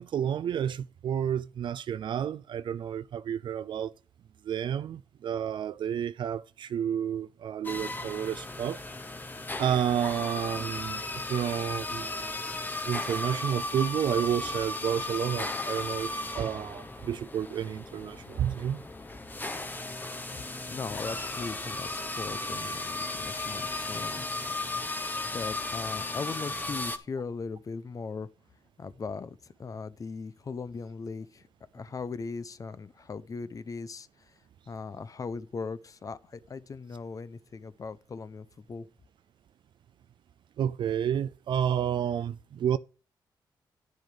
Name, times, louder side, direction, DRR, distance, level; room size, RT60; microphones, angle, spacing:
voice 1, 0.0-3.9 4.4-8.8 9.6-11.0 11.3-12.3 12.8-18.8 40.6-42.8, right 9 dB, 70° right, 0.4 m, -30 dB
sound 1, 7.6-27.0, left 2 dB, 20° left, 1.2 m, -35 dB
voice 2, 20.7-24.3 25.3-28.3 28.8-31.5 31.7-34.3 34.7-38.9, left 4 dB, 45° left, 0.8 m, -39 dB
10.5 x 6.4 x 4.9 m
cardioid pair, 90°, 9 cm